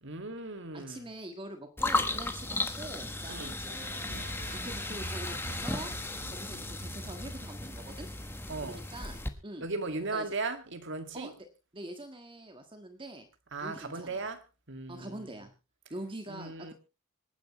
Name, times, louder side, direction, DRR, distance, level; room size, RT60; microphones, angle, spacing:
voice 1, 0.0-1.1 3.3-3.6 8.5-8.8 9.6-11.3 13.5-14.4 14.7-15.4 16.3-16.7, right 3 dB, 60° right, 2.1 m, -37 dB
voice 2, 0.7-4.0 4.5-5.9 6.3-8.1 8.6-9.7 10.0-10.3 11.1-11.5 11.7-13.3 13.6-14.3 14.9-15.5 15.9-16.7, right 1 dB, 25° right, 1.6 m, -44 dB
sound 1, 1.8-9.3, left 2 dB, 10° left, 1.3 m, -35 dB
sound 2, 3.8-8.8, right 1 dB, 40° right, 4.1 m, -45 dB
26.0 x 9.9 x 3.1 m
head